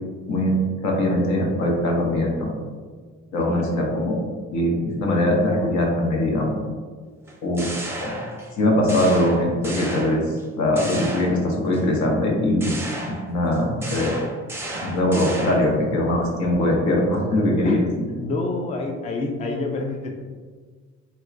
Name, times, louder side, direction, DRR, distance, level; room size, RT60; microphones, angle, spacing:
voice 1, 0.3-2.5 3.3-4.2 4.5-6.6 7.4-7.7 8.0-8.1 8.6-10.2 10.6-12.8 13.1-14.1 14.8-18.1, left 1 dB, 70° left, -1 dB, 0.9 m, -21 dB
sound 1, 7.3-8.6 8.9-10.4 10.8-11.8 12.6-15.8, right 1 dB, 10° right, 0.6 m, -33 dB
voice 2, 18.2-20.2, left 2 dB, 25° left, 2 dB, 0.4 m, -28 dB
4.2 x 2.2 x 2.4 m, 1.5 s
cardioid pair, 90°, 30 cm